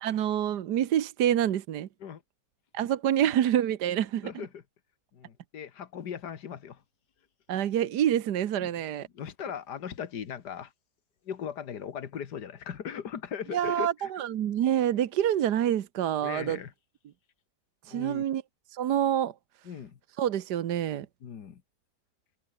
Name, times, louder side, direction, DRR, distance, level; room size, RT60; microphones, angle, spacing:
voice 1, 0.0-1.9 2.7-4.3 7.5-9.1 13.5-16.6 17.9-18.4 18.7-19.3 20.2-21.1, right 10 dB, 80° right, 1.6 m, -27 dB
voice 2, 4.2-4.6 5.1-6.8 8.6-8.7 9.1-10.7 11.3-14.1 16.2-16.7 17.9-18.3 19.7-20.0 21.2-21.6, left 8 dB, 80° left, 2.1 m, -38 dB
omnidirectional pair, 1.8 m